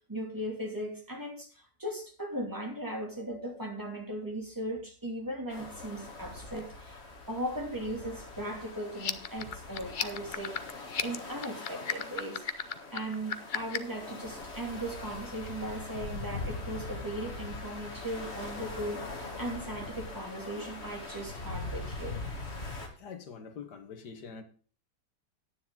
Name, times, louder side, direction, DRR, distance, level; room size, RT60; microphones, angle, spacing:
voice 1, 0.1-7.0 7.3-10.6 11.0-12.5 12.9-22.2, right 1 dB, 10° right, 1 dB, 2.6 m, -38 dB
sound 1, 5.5-22.9, left 3 dB, 40° left, 2.1 m, -42 dB
sound 2, 8.9-14.0, left 7 dB, 90° left, 0.4 m, -35 dB
voice 2, 23.0-24.4, left 6 dB, 70° left, 8 dB, 1.9 m, -44 dB
10.0 x 9.6 x 3.8 m, 0.41 s
omnidirectional pair, 1.9 m